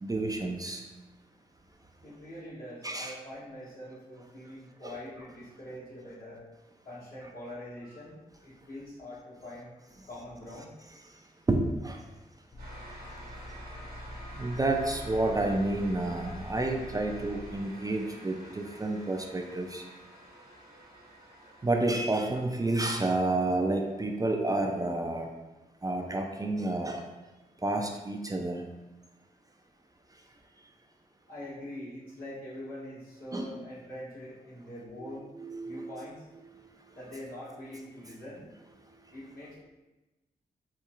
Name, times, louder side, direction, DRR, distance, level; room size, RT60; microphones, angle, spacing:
voice 1, 0.0-0.8 2.8-3.2 4.8-4.9 11.5-12.0 14.4-19.8 21.6-25.3 25.8-27.0 27.6-28.6 33.3-33.5 35.0-35.9, right 2 dB, 20° right, 2 dB, 0.4 m, -30 dB
voice 2, 2.0-6.4 6.8-9.7 10.1-10.7 31.3-35.3 35.6-36.2 36.9-38.5 39.1-39.6, left 1 dB, 65° left, -8 dB, 1.5 m, -44 dB
sound 1, 12.5-17.5, left 1 dB, 40° left, 0.4 m, -45 dB
sound 2, 12.6-24.0, equal, 70° right, 0.9 m, -50 dB
4.2 x 2.8 x 2.4 m, 1.1 s
cardioid pair, 50°, 16 cm